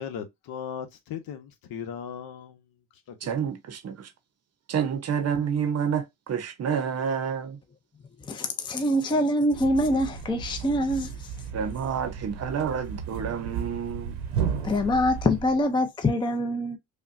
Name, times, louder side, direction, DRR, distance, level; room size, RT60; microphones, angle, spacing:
voice 1, 0.0-2.6 3.1-3.2, left 8 dB, 65° left, 1.0 m, -37 dB
voice 2, 3.2-4.1 4.7-7.6 11.5-14.2, right 7 dB, 40° right, 0.7 m, -29 dB
voice 3, 8.2-11.3 14.6-16.8, left 1 dB, 10° left, 0.5 m, -25 dB
Thump thud, 9.5-15.7, right 7 dB, 90° right, 0.9 m, -34 dB
5.5 x 2.2 x 2.5 m
cardioid pair, 110°, 39 cm